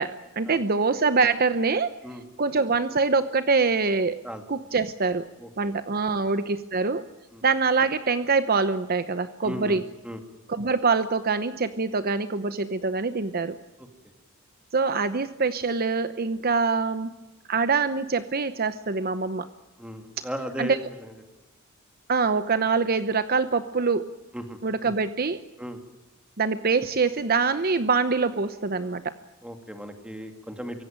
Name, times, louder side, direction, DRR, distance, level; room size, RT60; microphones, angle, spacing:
voice 1, 0.0-2.0 2.4-4.2 4.5-5.3 5.6-7.1 7.4-9.8 10.5-13.6 14.7-17.1 17.5-19.5 20.6-20.8 22.1-24.1 24.6-25.4 26.4-29.1, right 4 dB, 45° right, 12 dB, 0.8 m, -24 dB
voice 2, 5.4-5.8 6.1-6.3 7.3-7.4 9.4-10.2 13.8-13.9 19.8-21.1 24.3-24.6 25.6-25.8 29.4-30.8, equal, 5° right, 5 dB, 2.6 m, -37 dB
24.0 x 17.5 x 9.0 m, 1.1 s
head